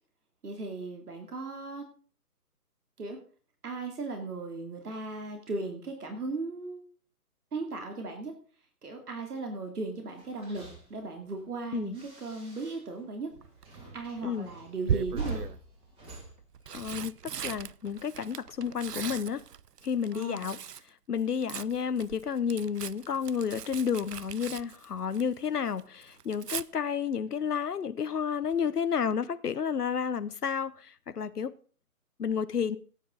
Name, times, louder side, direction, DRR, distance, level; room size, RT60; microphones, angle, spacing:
voice 1, 0.4-1.8 3.0-3.2 3.6-6.8 7.5-8.3 8.8-10.6 10.9-13.3 13.9-15.4 20.1-20.5, right 3 dB, 75° right, 2.9 m, -37 dB
sound 1, 10.1-13.0 13.3-17.2, right 2 dB, 10° right, 2.9 m, -45 dB
Tearing, 13.4-13.8 14.8-15.6 16.4-20.9 21.2-25.5 25.8-26.6 28.5-28.8 29.1-29.2, right 8 dB, 90° right, 0.7 m, -38 dB
voice 2, 16.7-17.1 17.4-19.4 19.8-20.6 21.1-31.5 32.2-32.8, left 7 dB, 80° left, 0.9 m, -31 dB
17.0 x 9.4 x 3.9 m
figure-of-eight pair, 145°, 46 cm